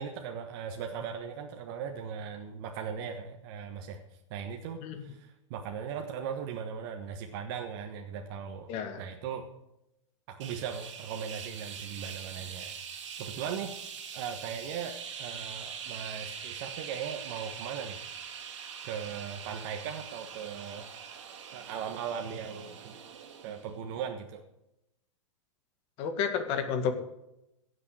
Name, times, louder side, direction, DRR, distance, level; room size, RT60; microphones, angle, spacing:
voice 1, 0.0-9.5 10.3-12.8 13.2-18.0 18.8-23.0 23.4-24.4, right 7 dB, 45° right, 3 dB, 1.4 m, -39 dB
voice 2, 8.7-9.0 26.0-27.0, left 6 dB, 35° left, 7 dB, 1.9 m, -31 dB
sound 1, 10.4-23.7, right 7 dB, 65° right, 2.5 m, -43 dB
16.0 x 6.8 x 6.4 m, 0.87 s
hypercardioid pair, 145°, 16 cm